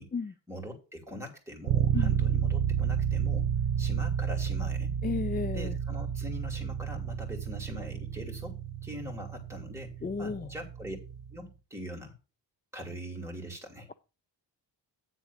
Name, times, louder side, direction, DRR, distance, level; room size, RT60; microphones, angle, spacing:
voice 1, 0.5-3.5 3.8-4.9 5.5-9.9 10.2-11.0 11.3-12.1 12.7-13.9, equal, 5° right, 0 dB, 2.7 m, -42 dB
sound 1, 1.7-11.4, right 8 dB, 85° right, 0.7 m, -31 dB
voice 2, 5.0-5.8 10.0-10.5, left 4 dB, 25° left, 13 dB, 0.4 m, -33 dB
9.7 x 4.0 x 7.1 m, 0.31 s
cardioid pair, 100°, 43 cm